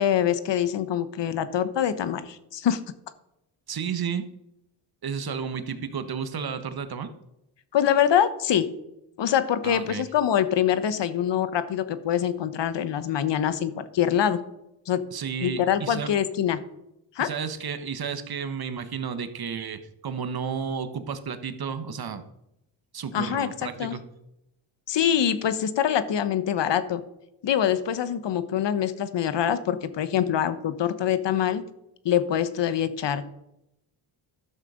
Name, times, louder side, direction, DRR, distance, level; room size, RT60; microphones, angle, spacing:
voice 1, 0.0-2.8 7.7-8.6 9.2-14.4 14.9-15.0 15.4-16.6 17.2-17.3 23.1-23.5 23.8-23.9 24.9-27.0 27.4-31.6 32.0-33.2, left 9 dB, 60° left, 12 dB, 1.1 m, -24 dB
voice 2, 3.7-4.2 5.0-7.1 9.6-10.1 15.1-16.2 17.2-22.2 22.9-24.0, right 6 dB, 50° right, 10 dB, 1.4 m, -32 dB
12.5 x 6.5 x 5.1 m, 0.84 s
supercardioid pair, 60°, 48 cm